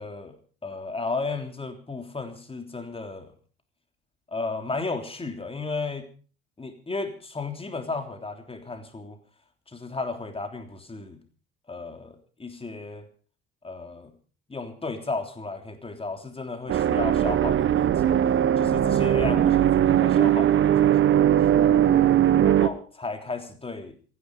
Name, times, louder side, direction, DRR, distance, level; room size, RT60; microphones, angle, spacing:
voice 1, 0.0-3.3 4.3-6.1 6.6-9.2 9.7-11.2 11.7-13.1 13.6-14.1 14.5-18.1 18.6-21.5 22.4-24.0, left 3 dB, 20° left, 5 dB, 3.3 m, -34 dB
sound 1, 16.7-22.7, right 11 dB, 40° right, 1.4 m, -20 dB
27.0 x 11.0 x 4.8 m, 0.40 s
figure-of-eight pair, 65°, 31 cm